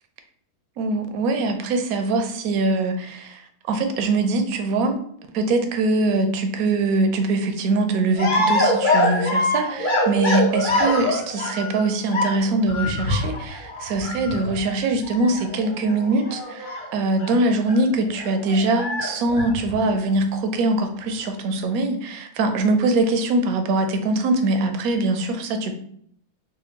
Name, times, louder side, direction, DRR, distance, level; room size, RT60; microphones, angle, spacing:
voice 1, 0.8-3.4 3.7-5.0 5.3-25.7, right 2 dB, 70° right, 0.9 m, -22 dB
sound 1, 8.2-11.9 12.1-17.4 17.7-17.8 18.1-19.9, left 1 dB, 45° left, 0.7 m, -24 dB
4.2 x 2.2 x 2.8 m
omnidirectional pair, 1.7 m